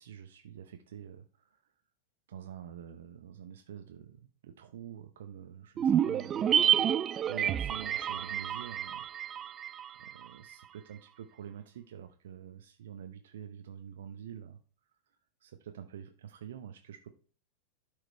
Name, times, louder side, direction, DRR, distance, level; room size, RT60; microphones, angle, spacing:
voice 1, 0.0-1.7 2.3-6.5 7.3-9.0 10.0-14.6 15.1-17.1, right 9 dB, 60° right, 6 dB, 0.8 m, -47 dB
sound 1, 5.8-10.3 10.5-10.6, right 9 dB, 25° right, 0.3 m, -29 dB
12.0 x 4.9 x 4.4 m, 0.39 s
figure-of-eight pair, 90°, 0 cm